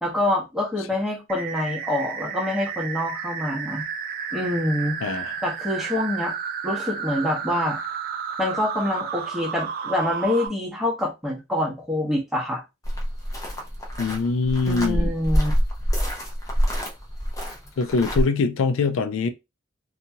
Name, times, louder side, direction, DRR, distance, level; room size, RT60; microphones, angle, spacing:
voice 1, 0.0-3.8 4.3-6.3 6.6-7.8 8.4-12.6 14.7-15.6, left 1 dB, ahead, 1.0 m, -26 dB
sound 1, 1.3-10.5, right 7 dB, 50° right, 0.5 m, -32 dB
voice 2, 5.0-5.3 14.0-15.1 17.8-19.3, left 4 dB, 80° left, 0.4 m, -23 dB
sound 2, 12.8-18.2, equal, 20° left, 0.7 m, -26 dB
2.8 x 2.3 x 2.7 m
head